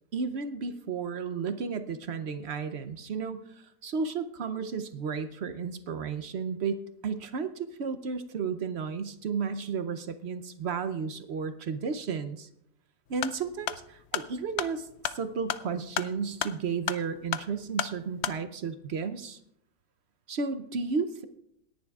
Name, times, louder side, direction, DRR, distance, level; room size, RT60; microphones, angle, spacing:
voice 1, 0.1-3.4 3.8-12.5 13.1-19.4 20.3-21.2, right 5 dB, 60° right, 10 dB, 0.7 m, -33 dB
sound 1, 13.1-18.4, left 10 dB, 80° left, 0.6 m, -35 dB
27.0 x 10.5 x 2.4 m, 0.76 s
omnidirectional pair, 1.8 m